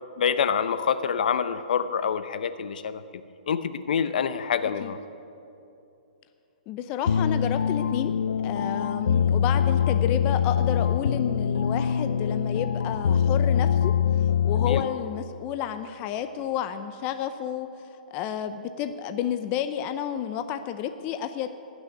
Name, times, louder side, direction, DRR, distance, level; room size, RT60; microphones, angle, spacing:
voice 1, 0.2-3.0 3.5-5.0 14.7-14.8, left 7 dB, 65° left, 12 dB, 0.7 m, -26 dB
voice 2, 6.7-8.1 8.4-17.7 18.1-21.5, left 9 dB, 25° left, 9 dB, 0.6 m, -31 dB
sound 1, 7.1-15.2, left 8 dB, 85° left, 0.4 m, -24 dB
18.0 x 6.3 x 9.7 m, 2.7 s
hypercardioid pair, 155°, 5 cm